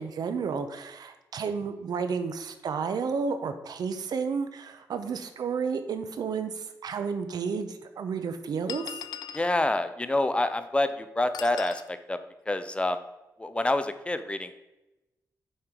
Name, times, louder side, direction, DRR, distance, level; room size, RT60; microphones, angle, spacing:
voice 1, 0.0-9.0, right 5 dB, 75° right, 9 dB, 0.7 m, -32 dB
sound 1, 6.7-6.8 7.7-7.8 8.7-9.5 11.3-11.9, left 8 dB, 85° left, 0.4 m, -39 dB
voice 2, 9.3-12.2 12.5-13.0 13.4-14.5, left 2 dB, 15° left, 10 dB, 0.5 m, -27 dB
7.2 x 4.6 x 5.1 m, 1.0 s
wide cardioid pair, 110°, 7 cm